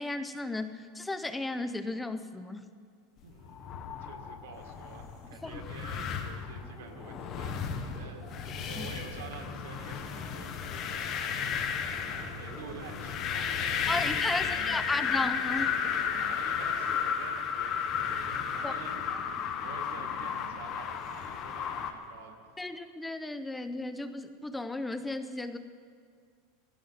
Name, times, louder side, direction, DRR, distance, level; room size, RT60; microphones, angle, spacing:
voice 1, 0.0-2.7 5.4-5.6 8.8-8.9 13.9-15.7 18.6-18.7 22.6-25.6, left 2 dB, 5° left, 10 dB, 0.6 m, -34 dB
voice 2, 3.2-15.2 16.0-22.6, right 5 dB, 85° right, 3 dB, 2.0 m, -49 dB
sound 1, 3.4-21.9, left 7 dB, 35° left, 1.1 m, -34 dB
sound 2, 4.5-22.1, right 2 dB, 30° right, 3.0 m, -51 dB
sound 3, 7.2-15.6, left 3 dB, 60° left, 4.6 m, -51 dB
18.5 x 17.0 x 4.1 m, 2.1 s
supercardioid pair, 150°, 0 cm